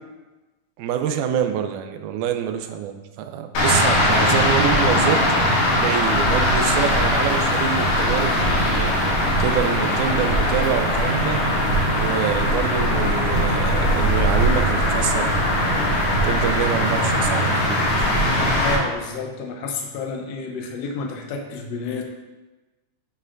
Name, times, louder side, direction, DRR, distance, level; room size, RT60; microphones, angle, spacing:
voice 1, 0.8-5.2 5.8-11.4 11.9-15.8 16.2-18.5, right 9 dB, 85° right, 7 dB, 2.1 m, -26 dB
sound 1, 3.6-18.8, equal, 85° left, 3.0 m, -20 dB
voice 2, 18.6-22.0, left 4 dB, 65° left, 2 dB, 1.8 m, -30 dB
8.7 x 7.3 x 2.6 m, 1.2 s
omnidirectional pair, 3.5 m